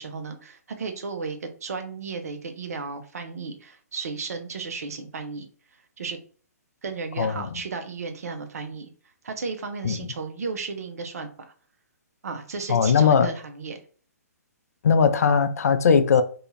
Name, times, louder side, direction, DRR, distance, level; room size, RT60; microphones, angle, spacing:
voice 1, 0.0-5.5 6.0-6.2 6.8-8.9 9.2-11.3 12.2-13.8, right 4 dB, 65° right, 0.6 m, -34 dB
voice 2, 12.7-13.3 14.8-16.2, left 6 dB, 65° left, 0.4 m, -19 dB
2.6 x 2.3 x 3.0 m
figure-of-eight pair, 130°, 9 cm